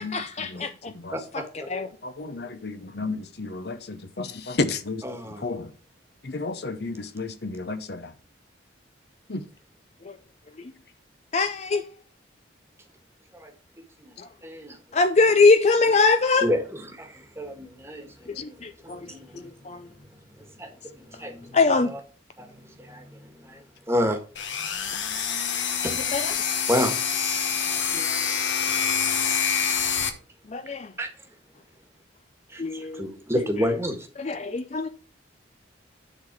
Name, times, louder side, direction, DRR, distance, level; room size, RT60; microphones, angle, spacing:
voice 1, 0.0-0.9 1.3-1.9 10.0-10.1 10.6-10.7 11.3-11.8 14.2-14.3 14.9-16.5 18.4-19.9 21.5-21.9 26.1-26.4 27.9-28.2 30.5-30.9 32.6-33.1 33.6-33.7 34.2-34.9, left 4 dB, 35° left, 0.5 m, -23 dB
voice 2, 1.1-1.4 5.0-5.4 13.4-13.5 14.4-14.8 16.4-16.6 17.0-17.1 17.4-18.1 18.8-19.4 20.6-20.7 21.1-21.5 22.4-22.5 22.8-23.0 23.5-23.6 23.9-24.2 25.8-26.0 26.7-26.9 31.0-31.1 32.5-34.0, equal, 15° right, 1.5 m, -28 dB
voice 3, 2.0-5.0 5.4-5.7 6.2-8.0 9.3-9.4, left 3 dB, 55° left, 0.8 m, -31 dB
sound 1, 24.3-30.1, left 7 dB, 75° left, 1.3 m, -26 dB
10.0 x 4.1 x 5.9 m
head